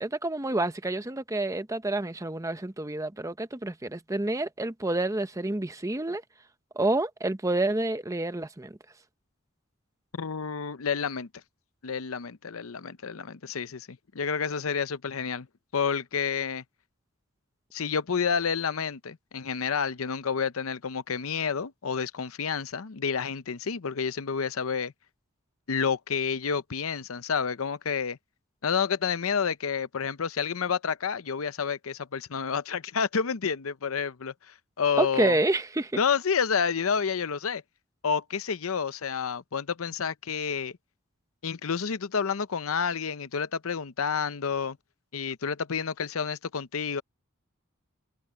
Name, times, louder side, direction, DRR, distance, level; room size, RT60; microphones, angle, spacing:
voice 1, 0.0-6.2 6.8-8.7 35.0-35.9, right 2 dB, 15° right, 0.8 m, -28 dB
voice 2, 10.1-11.3 11.8-15.5 15.7-16.6 17.7-24.9 25.7-28.2 28.6-35.4 36.0-37.6 38.0-40.7 41.4-44.8 45.1-47.0, left 6 dB, 85° left, 0.7 m, -29 dB
head